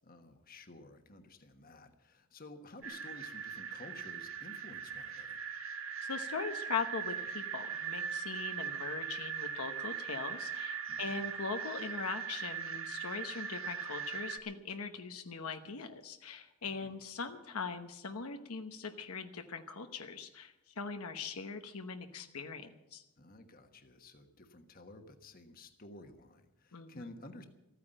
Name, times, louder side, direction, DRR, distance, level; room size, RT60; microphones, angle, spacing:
voice 1, 0.0-5.4 10.9-11.3 16.6-17.0 23.2-27.5, left 2 dB, 40° left, 6 dB, 1.3 m, -53 dB
sound 1, 2.8-14.4, right 7 dB, 65° right, 1.3 m, -40 dB
voice 2, 6.0-23.0 26.7-27.0, left 5 dB, 75° left, 7 dB, 1.0 m, -41 dB
14.5 x 9.5 x 8.9 m, 0.92 s
head